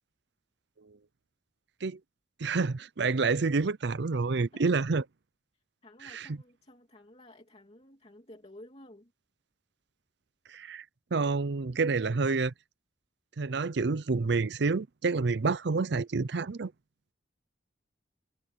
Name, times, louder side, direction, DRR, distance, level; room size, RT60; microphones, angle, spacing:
voice 1, 2.4-5.0 6.0-6.3 10.5-10.8 11.1-12.5 13.4-16.7, right 4 dB, 65° right, 0.6 m, -28 dB
voice 2, 5.8-9.1, left 1 dB, 35° left, 3.0 m, -53 dB
head